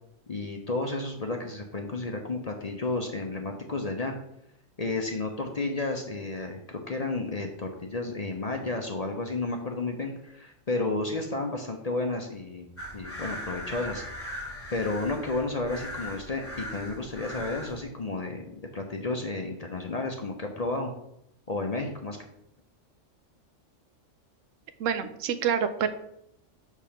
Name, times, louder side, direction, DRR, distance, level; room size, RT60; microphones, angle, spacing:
voice 1, 0.3-4.1 4.8-12.7 12.9-14.0 14.7-20.9 21.5-22.2, left 2 dB, 40° left, 2 dB, 0.7 m, -32 dB
sound 1, 12.8-17.8, left 1 dB, 10° left, 1.0 m, -39 dB
voice 2, 24.8-25.9, right 7 dB, 80° right, 10 dB, 1.0 m, -27 dB
6.8 x 3.6 x 5.7 m, 0.77 s
omnidirectional pair, 1.3 m